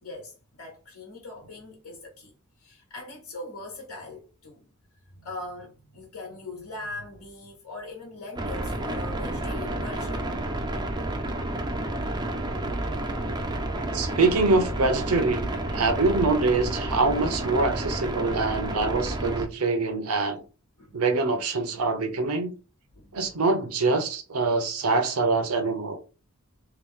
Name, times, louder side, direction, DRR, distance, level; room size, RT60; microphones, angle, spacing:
voice 1, 0.0-4.7 5.1-10.4 20.8-21.0 21.3-21.4 21.8-21.9 22.9-23.2, left 2 dB, 85° left, 1.1 m, -41 dB
sound 1, 8.4-19.5, right 1 dB, 20° right, 0.5 m, -30 dB
voice 2, 13.9-20.4 20.9-22.5 23.1-26.0, right 3 dB, 90° right, 0.7 m, -24 dB
3.0 x 2.9 x 3.6 m
head